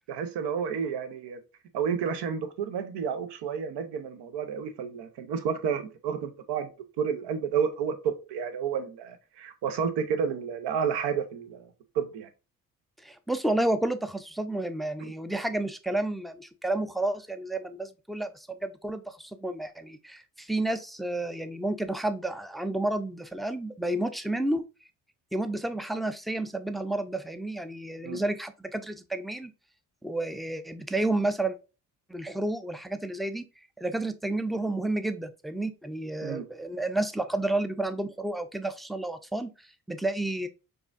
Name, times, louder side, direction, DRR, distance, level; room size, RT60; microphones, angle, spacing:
voice 1, 0.1-1.4 1.7-6.7 7.0-11.7 11.9-12.3 15.0-15.1 28.0-28.2 36.2-36.4, right 7 dB, 75° right, 0.8 m, -30 dB
voice 2, 13.0-24.6 25.3-29.5 30.0-31.6 32.1-33.4 33.8-40.5, right 2 dB, ahead, 0.4 m, -31 dB
4.7 x 2.4 x 2.4 m
hypercardioid pair, 50°, 42 cm